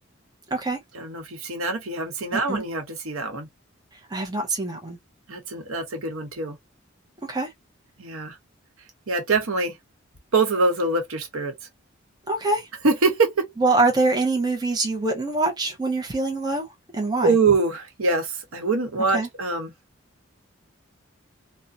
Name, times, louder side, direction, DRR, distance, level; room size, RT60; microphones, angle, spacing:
voice 1, 0.9-3.5 5.3-6.6 8.0-8.4 9.1-9.7 10.3-11.5 12.8-13.5 17.2-19.7, right 3 dB, 90° right, 1.0 m, -24 dB
voice 2, 2.3-2.6 4.1-5.0 7.3-7.5 12.3-12.6 13.6-16.7 16.9-17.3 19.1-19.3, right 2 dB, 20° right, 0.5 m, -24 dB
2.5 x 2.1 x 2.5 m
head